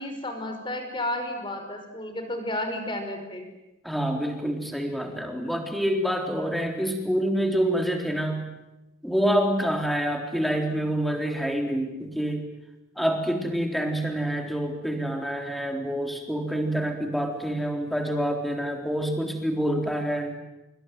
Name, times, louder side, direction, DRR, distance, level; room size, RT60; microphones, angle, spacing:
voice 1, 0.0-3.5, left 1 dB, 25° left, 6 dB, 5.3 m, -32 dB
voice 2, 3.8-8.5 9.0-12.5 13.0-20.4, equal, ahead, 4 dB, 3.8 m, -27 dB
26.0 x 24.5 x 9.3 m, 0.98 s
head